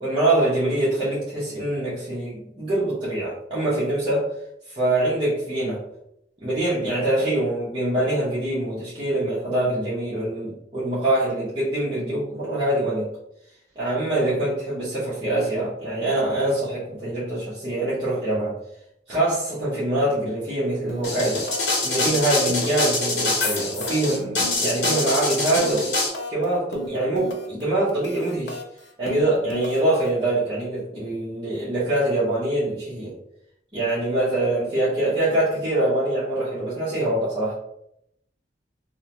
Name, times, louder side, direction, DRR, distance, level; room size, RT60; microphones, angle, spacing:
voice 1, 0.0-4.3 4.7-5.8 6.4-13.1 13.8-18.6 19.1-21.5 21.8-25.9 26.3-28.6 29.0-33.1 33.7-37.5, right 1 dB, 30° right, -11 dB, 0.8 m, -24 dB
sound 1, 20.9-21.2 21.5-21.8 22.1-22.9 23.2-26.4 26.7-27.6 27.9-30.1, left 2 dB, 90° left, 0.5 m, -36 dB
sound 2, 21.0-26.1, left 3 dB, 75° left, 0.9 m, -25 dB
2.7 x 2.1 x 2.8 m, 0.77 s
head